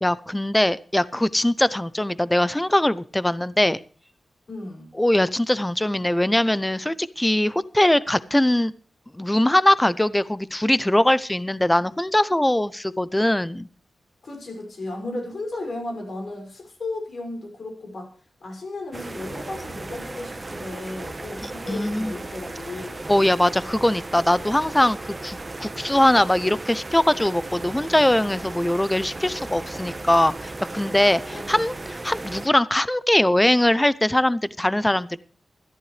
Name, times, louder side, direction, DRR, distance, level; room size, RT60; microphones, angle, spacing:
voice 1, 0.0-3.8 5.0-8.7 9.1-13.7 21.4-22.2 23.1-35.2, left 1 dB, 10° left, 17 dB, 0.6 m, -21 dB
voice 2, 4.5-4.9 14.2-18.1 18.4-23.1 31.3-31.6, left 2 dB, 50° left, 1 dB, 6.0 m, -34 dB
sound 1, 18.9-32.5, right 2 dB, 25° right, 1.1 m, -36 dB
20.0 x 14.0 x 3.3 m, 0.40 s
wide cardioid pair, 135°, 0 cm